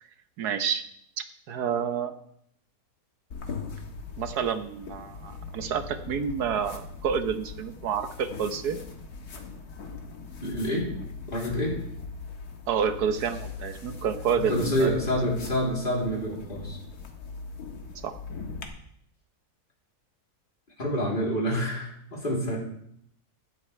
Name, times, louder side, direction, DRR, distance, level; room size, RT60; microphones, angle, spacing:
voice 1, 0.4-0.8 1.5-2.1 4.2-8.8 12.7-14.9 18.0-18.1, right 7 dB, 90° right, 9 dB, 1.5 m, -29 dB
sound 1, 3.3-18.6, left 4 dB, 75° left, 2.0 m, -40 dB
voice 2, 10.4-10.9 11.3-11.8 14.4-16.8 20.8-22.6, equal, 35° left, -3 dB, 3.8 m, -27 dB
16.5 x 12.5 x 3.4 m, 0.70 s
omnidirectional pair, 1.6 m